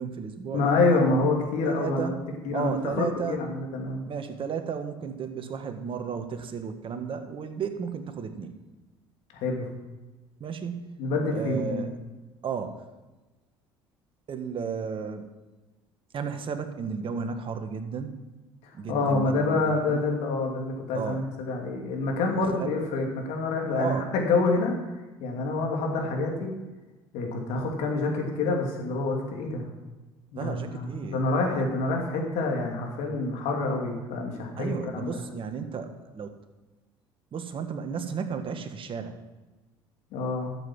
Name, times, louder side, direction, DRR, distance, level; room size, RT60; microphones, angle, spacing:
voice 1, 0.0-1.0 1.4-2.2 2.5-3.4 4.1-8.6 10.4-11.0 11.3-11.9 12.4-12.8 14.3-15.3 16.1-18.1 18.7-20.0 20.9-21.2 22.6-22.7 23.7-24.1 30.3-31.2 34.6-36.3 37.3-39.2, right 6 dB, 45° right, 7 dB, 1.6 m, -33 dB
voice 2, 0.5-2.2 2.4-4.0 9.3-9.7 11.0-11.8 18.9-24.7 25.2-26.5 27.1-29.7 30.3-35.2 40.1-40.5, left 3 dB, 65° left, 1 dB, 2.8 m, -27 dB
13.0 x 7.5 x 6.1 m, 1.1 s
hypercardioid pair, 65°, 12 cm